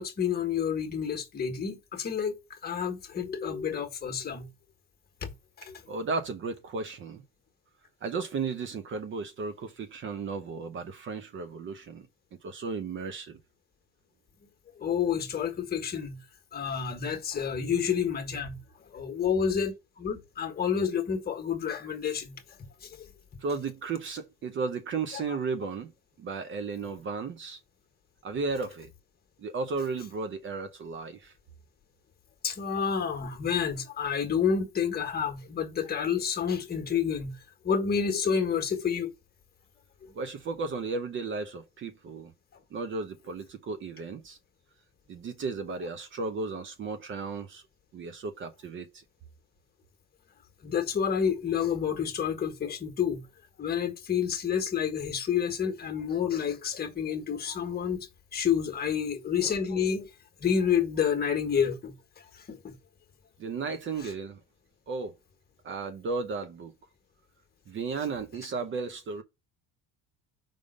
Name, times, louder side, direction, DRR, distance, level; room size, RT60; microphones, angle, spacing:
voice 1, 0.0-4.5 5.2-5.3 5.7-5.8 14.8-16.2 16.5-18.6 18.9-22.3 22.8-22.9 32.4-37.3 37.6-39.1 50.6-53.2 53.6-58.1 58.3-60.1 60.4-61.9 62.5-62.7, left 7 dB, 25° left, 1.5 m, -29 dB
voice 2, 5.9-7.2 8.0-12.1 12.4-13.4 23.4-25.9 26.2-27.6 28.2-28.9 29.4-31.3 40.1-42.3 42.7-44.4 45.1-47.6 47.9-49.0 63.4-64.4 64.9-65.2 65.6-66.7 67.7-69.2, right 4 dB, 35° right, 0.7 m, -34 dB
5.2 x 3.6 x 5.1 m
cardioid pair, 130°, 35 cm